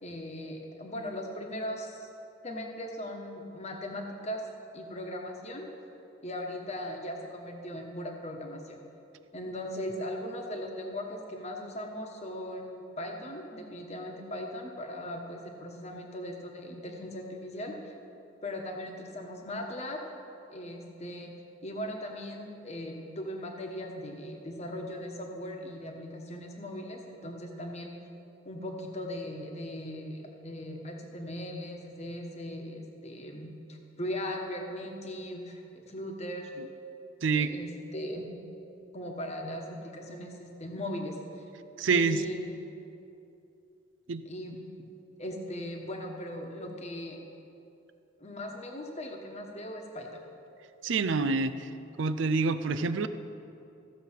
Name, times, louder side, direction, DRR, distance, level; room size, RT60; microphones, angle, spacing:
voice 1, 0.0-2.1 2.4-4.4 4.7-5.7 6.2-8.8 9.3-18.0 18.4-20.0 20.5-21.3 21.6-28.0 28.4-33.5 34.0-36.5 37.4-38.3 38.9-41.4 41.8-42.5 44.2-44.9 45.2-47.2 48.2-50.2, left 1 dB, 35° left, 1 dB, 1.2 m, -39 dB
voice 2, 37.2-37.5 41.8-42.2 44.1-44.2 50.8-51.5 52.0-53.1, right 4 dB, 70° right, 12 dB, 0.5 m, -26 dB
14.5 x 7.4 x 5.7 m, 2.8 s
head